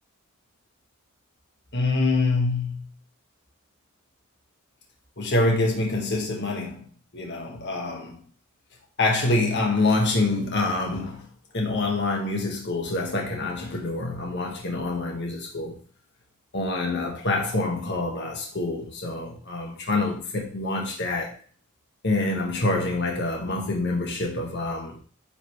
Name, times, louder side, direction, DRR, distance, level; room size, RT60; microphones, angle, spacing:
voice 1, 1.7-2.8 5.2-6.9 7.1-8.2 9.0-11.3 11.5-15.8 16.5-21.3 22.0-25.0, left 2 dB, 55° left, 1.5 m, -26 dB
9.9 x 4.1 x 3.2 m
head